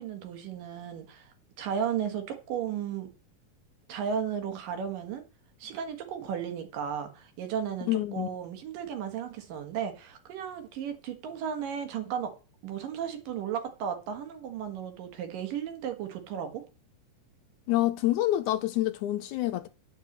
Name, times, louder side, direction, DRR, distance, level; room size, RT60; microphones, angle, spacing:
voice 1, 0.0-3.1 3.9-5.2 5.6-12.3 12.6-16.6, right 8 dB, 80° right, 3.2 m, -34 dB
voice 2, 7.9-8.3 17.7-19.7, left 15 dB, 75° left, 1.9 m, -27 dB
9.5 x 6.7 x 7.2 m
omnidirectional pair, 3.8 m